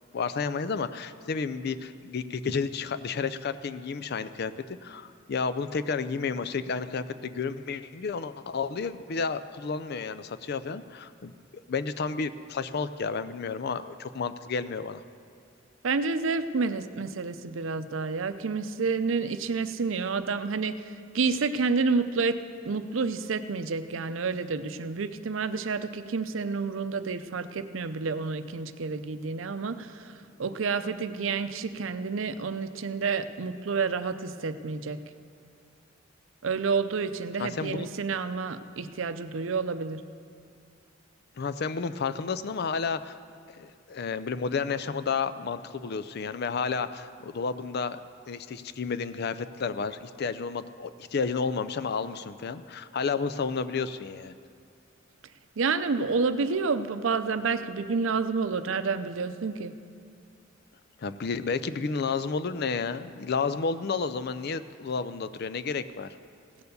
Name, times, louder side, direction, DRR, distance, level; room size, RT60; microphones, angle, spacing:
voice 1, 0.1-4.5 4.8-11.3 11.7-15.0 37.4-37.9 41.4-43.2 43.5-48.0 48.3-54.4 61.0-66.1, left 5 dB, 55° left, 13 dB, 0.5 m, -31 dB
voice 2, 15.8-20.8 21.1-35.0 36.4-40.0 55.6-59.7, right 4 dB, 85° right, 11 dB, 0.6 m, -29 dB
16.5 x 7.0 x 6.7 m, 2.4 s
head